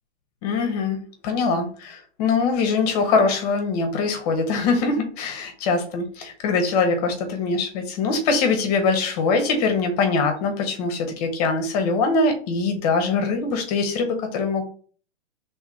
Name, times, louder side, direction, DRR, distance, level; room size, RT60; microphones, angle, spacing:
voice 1, 0.4-14.6, left 4 dB, 35° left, 5 dB, 1.0 m, -23 dB
3.3 x 3.0 x 4.7 m, 0.43 s
hypercardioid pair, 155°, 34 cm